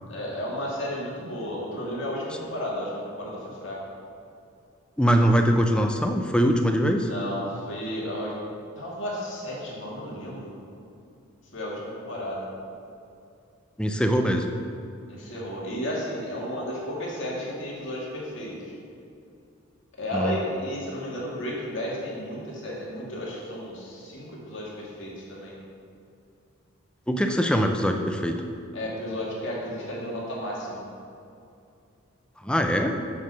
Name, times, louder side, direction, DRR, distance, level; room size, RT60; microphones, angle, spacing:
voice 1, 0.1-3.8 7.0-8.4 8.8-10.5 11.5-12.5 15.1-18.7 20.0-25.5 28.7-30.8, equal, 60° left, -4 dB, 2.2 m, -33 dB
voice 2, 5.0-7.1 13.8-14.5 20.1-20.4 27.1-28.4 32.4-33.0, equal, 5° left, 4 dB, 0.5 m, -22 dB
6.8 x 6.4 x 6.4 m, 2.5 s
head